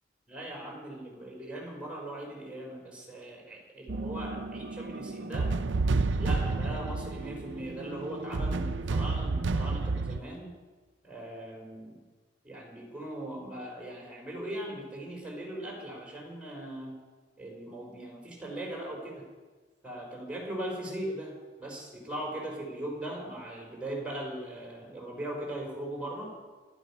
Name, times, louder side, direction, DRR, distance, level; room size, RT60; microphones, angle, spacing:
voice 1, 0.3-5.6 6.2-10.5 11.0-12.0 12.4-17.0 17.4-19.2 19.8-21.3 21.6-26.4, right 1 dB, 5° right, -2 dB, 4.0 m, -39 dB
sound 1, 3.9-10.2, right 3 dB, 75° right, 0.6 m, -31 dB
15.0 x 12.5 x 5.5 m, 1.3 s
head